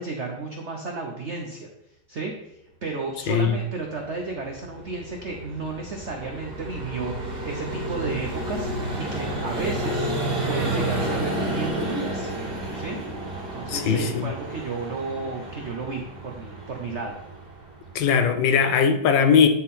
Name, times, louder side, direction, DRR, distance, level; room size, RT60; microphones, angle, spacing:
voice 1, 0.0-1.7 2.1-2.6 2.8-10.1 10.5-12.3 12.7-13.0 13.5-17.2, right 3 dB, 75° right, 0.6 m, -33 dB
voice 2, 3.3-3.6 13.7-14.3 17.9-19.5, left 6 dB, 75° left, 1.2 m, -20 dB
Vehicle, 3.9-18.6, right 1 dB, 30° right, 1.8 m, -31 dB
Meow, 10.0-10.9, right 3 dB, 50° right, 1.3 m, -40 dB
10.0 x 3.7 x 4.2 m
omnidirectional pair, 2.3 m